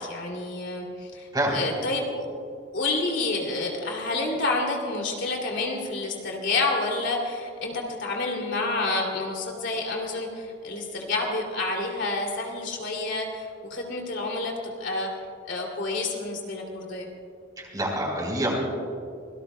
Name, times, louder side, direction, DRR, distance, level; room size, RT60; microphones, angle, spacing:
voice 1, 0.0-2.3 2.7-15.1 15.5-17.1, left 2 dB, 75° left, 0 dB, 2.7 m, -29 dB
voice 2, 17.6-18.5, right 1 dB, 20° right, -1 dB, 3.9 m, -26 dB
25.5 x 18.0 x 2.2 m, 2.4 s
head